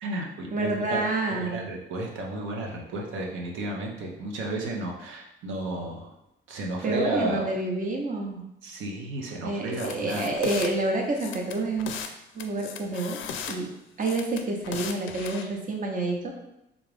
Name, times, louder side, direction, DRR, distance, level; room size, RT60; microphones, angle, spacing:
voice 1, 0.0-6.1 6.5-7.5 8.6-10.3, right 1 dB, 80° right, 0 dB, 0.8 m, -32 dB
voice 2, 0.5-1.7 6.8-8.4 9.4-11.9 12.3-13.2 13.5-13.7 14.0-16.4, right 2 dB, 40° right, 1 dB, 0.8 m, -28 dB
sound 1, 9.7-10.7 11.1-12.1 12.4-13.6 14.0-15.4, left 7 dB, 80° left, 0.4 m, -37 dB
3.6 x 2.4 x 3.4 m, 0.85 s
cardioid pair, 90°, 20 cm